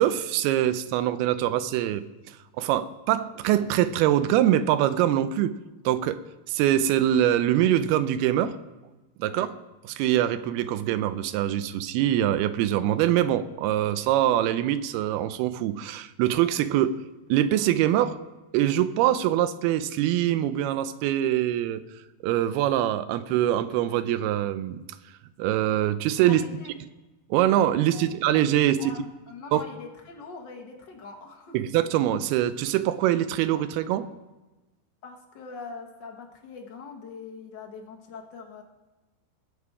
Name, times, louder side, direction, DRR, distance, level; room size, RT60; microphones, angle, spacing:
voice 1, 0.0-2.0 2.6-5.5 5.9-6.2 6.5-8.6 9.2-9.5 9.8-17.0 17.3-18.2 18.5-21.8 22.2-24.8 25.4-26.4 27.3-28.9 29.5-29.6 31.5-34.1, right 12 dB, 85° right, 13 dB, 2.6 m, -23 dB
voice 2, 9.2-9.5 26.2-26.7 27.9-28.1 28.8-31.6 35.0-38.6, left 4 dB, 65° left, 1 dB, 1.1 m, -42 dB
20.0 x 7.2 x 4.8 m, 1.1 s
omnidirectional pair, 4.5 m